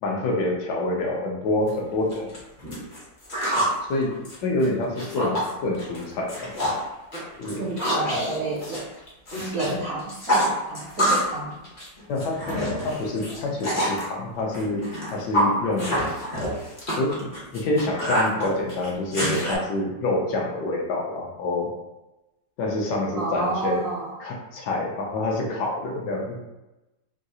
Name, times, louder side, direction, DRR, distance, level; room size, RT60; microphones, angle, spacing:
voice 1, 0.0-2.3 3.8-4.1 4.4-6.5 7.4-7.7 12.1-15.9 16.9-17.3 17.5-21.7 22.6-23.8 24.2-26.4, left 2 dB, 70° left, -1 dB, 1.2 m, -27 dB
sound 1, 1.7-1.8 2.1-3.8 4.1-5.5 5.8-6.0 6.3-6.8 7.1-9.7 10.0-11.4 11.6-14.0 14.5-19.5, equal, 45° left, 0.5 m, -26 dB
voice 2, 7.6-8.8 9.5-11.6 23.1-24.2, right 3 dB, 75° right, -3 dB, 0.7 m, -30 dB
3.7 x 2.3 x 2.7 m, 1.0 s
omnidirectional pair, 2.0 m